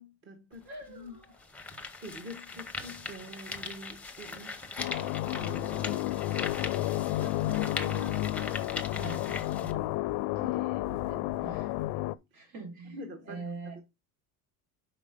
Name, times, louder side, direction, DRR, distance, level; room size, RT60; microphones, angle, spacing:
voice 1, 0.0-1.2 2.0-6.1 6.7-8.2 12.3-12.5 12.8-13.8, equal, 30° right, 1.0 m, -46 dB
sound 1, 0.5-0.6 1.2-9.7, left 3 dB, 5° left, 0.7 m, -40 dB
voice 2, 0.6-1.3 8.4-9.9 11.1-11.7 12.3-13.0 13.3-13.8, right 3 dB, 70° right, 2.8 m, -44 dB
sound 2, 4.8-12.1, left 16 dB, 70° left, 0.5 m, -31 dB
5.7 x 5.1 x 5.1 m
cardioid pair, 155°, 40 cm